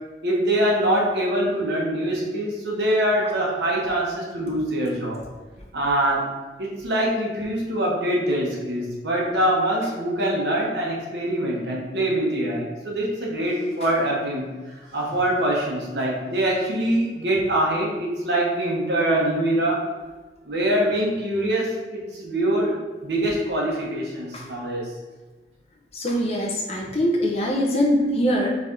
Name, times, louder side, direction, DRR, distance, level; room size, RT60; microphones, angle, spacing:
voice 1, 0.2-5.2 5.7-6.3 6.6-14.5 14.8-19.8 20.5-22.8 23.0-24.9, right 1 dB, 70° right, -3 dB, 1.2 m, -24 dB
voice 2, 25.9-28.5, equal, 35° left, -2 dB, 0.7 m, -23 dB
4.1 x 3.4 x 3.7 m, 1.2 s
head